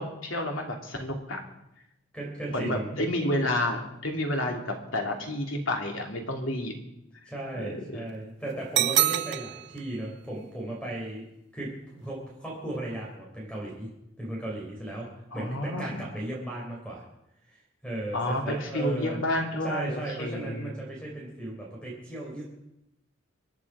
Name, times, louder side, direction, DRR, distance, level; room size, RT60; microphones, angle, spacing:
voice 1, 0.0-1.4 2.5-6.7 7.5-8.0 15.3-16.0 18.1-20.7, left 1 dB, 80° left, 2 dB, 2.7 m, -30 dB
voice 2, 2.1-2.9 7.3-11.3 11.5-13.9 14.2-15.1 15.3-17.0 17.5-19.2 19.6-22.4, right 1 dB, 5° left, -2 dB, 3.8 m, -36 dB
sound 1, 8.8-9.8, right 14 dB, 55° right, 0.5 m, -25 dB
25.0 x 9.9 x 4.9 m, 0.84 s
head